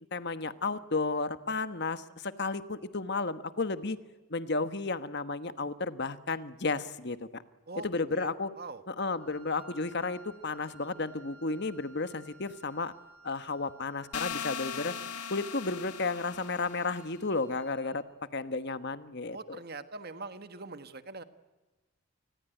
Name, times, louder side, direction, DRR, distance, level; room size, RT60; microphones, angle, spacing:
voice 1, 0.1-4.0 4.3-7.4 7.8-8.5 8.9-12.9 13.2-14.9 15.3-18.0 18.3-19.6, left 3 dB, 50° left, 12 dB, 1.2 m, -33 dB
voice 2, 8.1-8.8 19.3-21.2, right 3 dB, 45° right, 11 dB, 1.5 m, -43 dB
Wind instrument woodwind instrument, 9.1-18.0, right 3 dB, 75° right, 6.0 m, -56 dB
sound 1, 14.1-17.0, left 7 dB, 85° left, 1.6 m, -39 dB
29.0 x 20.5 x 9.1 m, 1.2 s
head